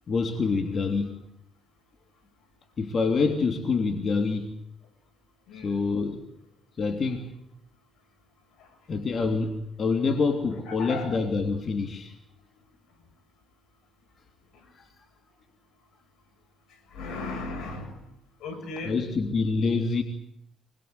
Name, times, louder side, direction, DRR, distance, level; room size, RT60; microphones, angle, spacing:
voice 1, 0.1-1.2 2.8-4.5 5.6-6.2 6.8-7.3 8.9-12.1 14.8-14.9 18.8-20.0, left 4 dB, 50° left, 5 dB, 3.2 m, -26 dB
voice 2, 5.5-5.9 10.7-11.2 16.9-17.9 18.4-19.0, left 3 dB, 85° left, 5 dB, 7.1 m, -36 dB
25.0 x 22.5 x 8.1 m, 0.75 s
cardioid pair, 90°, 0 cm